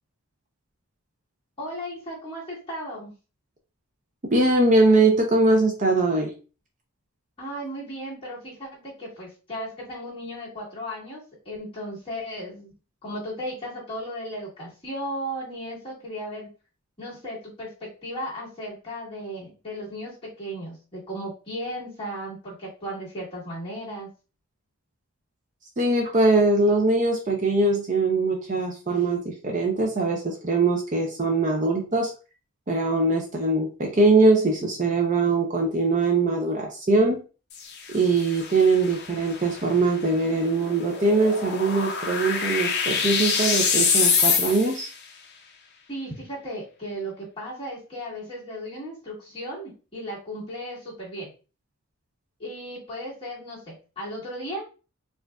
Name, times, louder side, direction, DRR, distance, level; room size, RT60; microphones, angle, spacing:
voice 1, 1.6-3.1 7.4-12.7 13.0-16.5 17.0-24.1 45.9-51.3 52.4-54.6, equal, 25° left, -7 dB, 1.9 m, -35 dB
voice 2, 4.3-6.3 25.8-32.1 32.7-37.2 37.9-44.9, right 2 dB, 35° right, 1 dB, 0.5 m, -22 dB
sound 1, 37.5-44.9, left 5 dB, 50° left, 0.6 m, -26 dB
4.7 x 2.5 x 2.3 m, 0.34 s
head